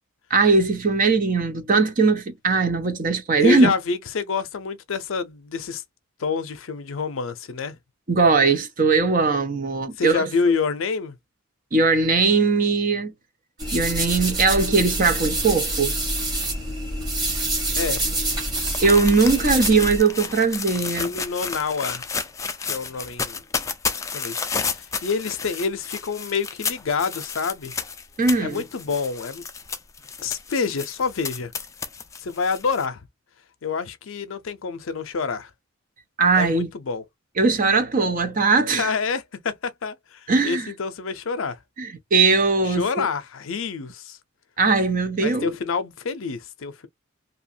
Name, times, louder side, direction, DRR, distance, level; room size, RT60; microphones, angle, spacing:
voice 1, 0.3-3.7 8.1-10.3 11.7-13.1 13.7-16.0 18.8-21.1 28.2-28.6 36.2-36.7 37.4-38.9 40.3-40.7 41.8-43.1 44.6-45.5, right 4 dB, 40° right, 0.5 m, -20 dB
voice 2, 3.4-5.8 6.2-7.8 10.0-11.2 17.8-18.1 20.9-22.0 22.6-23.4 24.1-27.7 28.4-29.4 30.2-31.5 32.2-33.0 33.6-35.5 36.4-37.0 38.7-41.6 42.6-44.2 45.2-46.9, left 5 dB, 70° left, 0.5 m, -27 dB
sound 1, 13.6-20.0, right 1 dB, 20° right, 1.1 m, -26 dB
sound 2, 17.8-32.9, left 5 dB, 15° left, 0.3 m, -32 dB
2.7 x 2.4 x 2.6 m
head